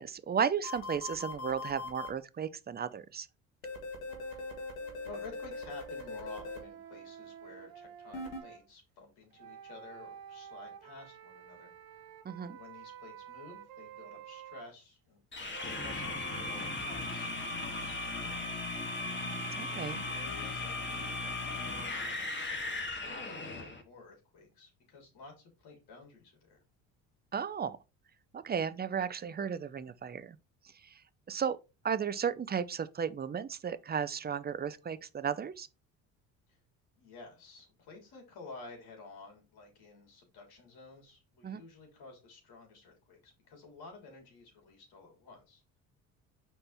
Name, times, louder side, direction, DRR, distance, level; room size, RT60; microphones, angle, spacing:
voice 1, 0.0-3.3 12.2-12.6 19.5-20.0 27.3-27.8 28.3-30.4 30.8-31.0 31.3-31.6 31.8-35.7 41.4-41.6, right 7 dB, 25° right, 0.6 m, -34 dB
sound 1, 0.6-2.1 3.6-6.6 8.1-8.4, left 3 dB, 85° left, 1.5 m, -40 dB
sound 2, 4.1-8.6 9.3-14.7 15.5-16.8, right 9 dB, 60° right, 1.2 m, -51 dB
voice 2, 5.0-12.1 12.5-18.6 19.6-26.6 36.5-36.6 37.0-45.6, left 3 dB, 65° left, 3.4 m, -52 dB
sound 3, 15.3-23.8, left 2 dB, 30° left, 1.9 m, -37 dB
5.4 x 4.4 x 4.2 m
hypercardioid pair, 60°, 40 cm